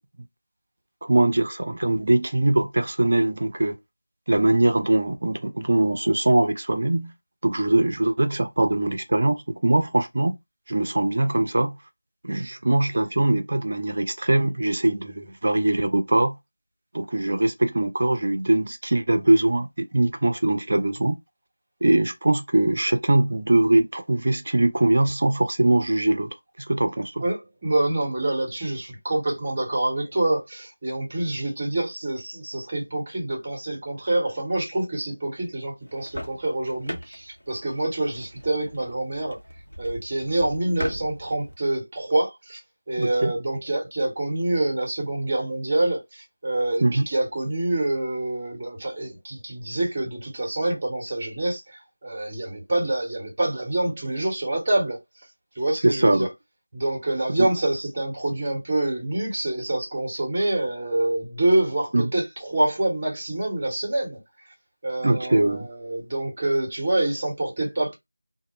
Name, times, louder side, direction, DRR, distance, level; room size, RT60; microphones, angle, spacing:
voice 1, 1.0-3.8 4.3-7.1 7.4-10.4 10.7-11.8 12.2-16.4 16.9-21.2 21.8-26.3 26.7-27.2 43.0-43.3 46.8-47.0 55.8-56.3 57.4-57.5 61.9-62.1 65.0-65.7, right 1 dB, 45° right, 0.4 m, -22 dB
voice 2, 27.2-39.4 39.8-42.6 42.9-55.0 55.6-56.3 56.7-64.2 64.8-67.9, right 1 dB, 25° right, 0.8 m, -26 dB
sound 1, 35.8-41.5, equal, 75° left, 0.8 m, -39 dB
2.1 x 2.0 x 2.9 m
figure-of-eight pair, 170°, 0 cm